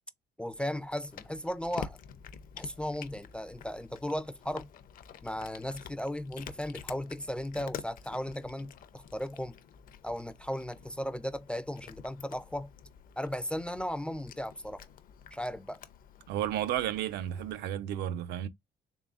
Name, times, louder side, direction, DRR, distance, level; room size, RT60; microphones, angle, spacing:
voice 1, 0.4-2.0 2.6-4.7 5.2-9.6 10.0-12.7 13.2-14.8 15.3-15.8, equal, 5° left, 0.3 m, -36 dB
Cat, 0.5-17.6, left 8 dB, 55° left, 0.5 m, -49 dB
voice 2, 16.3-18.5, right 11 dB, 80° right, 0.5 m, -32 dB
3.7 x 3.4 x 2.4 m
cardioid pair, 110°, 17 cm